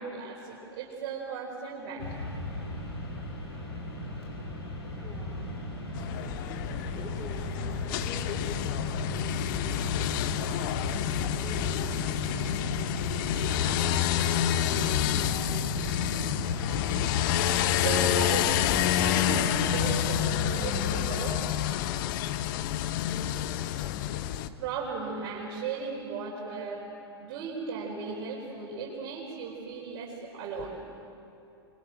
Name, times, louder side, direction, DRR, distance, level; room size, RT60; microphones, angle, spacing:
voice 1, 0.0-2.2 17.8-18.6 19.0-21.4 24.6-26.8 27.2-30.7, right 5 dB, 45° right, -5 dB, 5.0 m, -36 dB
Mechanisms, 2.0-21.4, left 1 dB, 70° left, 6.0 m, -36 dB
voice 2, 5.0-5.4 6.9-10.0 10.4-13.1 13.5-15.9, left 3 dB, 20° left, -4 dB, 4.3 m, -45 dB
sound 1, 5.9-24.5, left 12 dB, 50° left, 1.0 m, -29 dB
26.0 x 24.0 x 7.9 m, 2.9 s
figure-of-eight pair, 105°, 14 cm